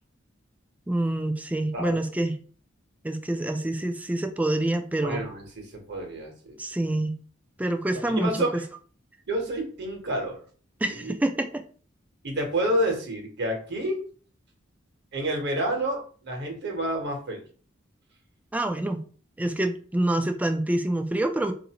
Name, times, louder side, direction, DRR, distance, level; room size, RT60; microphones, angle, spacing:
voice 1, 0.9-2.4 3.0-5.2 6.6-7.2 7.6-8.3 10.8-11.6 18.5-19.1 19.4-21.5, right 1 dB, 10° right, 6 dB, 0.3 m, -26 dB
voice 2, 1.7-2.0 5.0-6.6 7.9-8.5 9.3-10.4 10.9-11.1 12.2-14.0 15.1-17.4, right 1 dB, 60° right, 1 dB, 1.0 m, -29 dB
4.0 x 2.6 x 2.9 m, 0.43 s
head